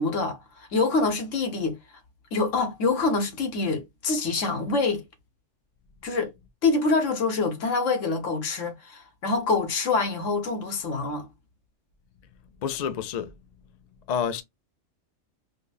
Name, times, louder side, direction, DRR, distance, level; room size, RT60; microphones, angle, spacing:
voice 1, 0.0-1.8 2.3-5.0 6.0-6.3 6.6-11.3, left 3 dB, 85° left, 1.3 m, -26 dB
voice 2, 12.6-13.3 14.1-14.4, left 8 dB, 60° left, 0.4 m, -28 dB
5.0 x 2.1 x 2.3 m
omnidirectional pair, 1.3 m